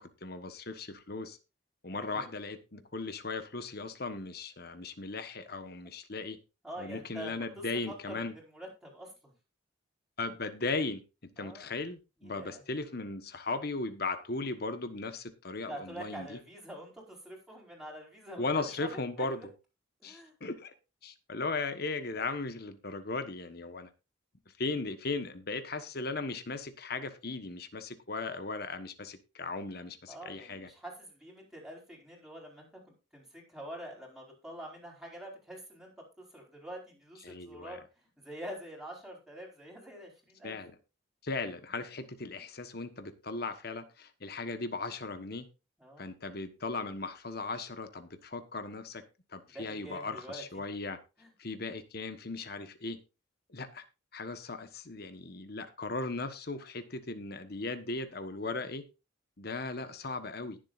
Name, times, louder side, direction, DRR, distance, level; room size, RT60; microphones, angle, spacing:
voice 1, 0.0-1.4 1.8-6.4 6.8-8.3 10.2-16.4 18.4-19.4 20.0-20.7 21.0-23.9 24.6-30.7 37.2-37.8 40.4-40.8 41.2-45.5 46.0-49.0 49.3-51.0 51.4-53.0 53.5-53.8 54.1-58.8 59.4-60.6, left 3 dB, 55° left, 9 dB, 1.3 m, -37 dB
voice 2, 1.9-2.3 6.1-6.2 6.6-9.3 11.4-11.7 12.2-12.6 15.6-19.5 20.0-20.3 30.1-32.7 33.1-35.9 36.2-37.8 38.2-40.6 45.8-46.1 49.5-50.4 51.2-51.3, right 1 dB, 5° right, -2 dB, 4.7 m, -46 dB
20.0 x 7.6 x 2.6 m, 0.29 s
head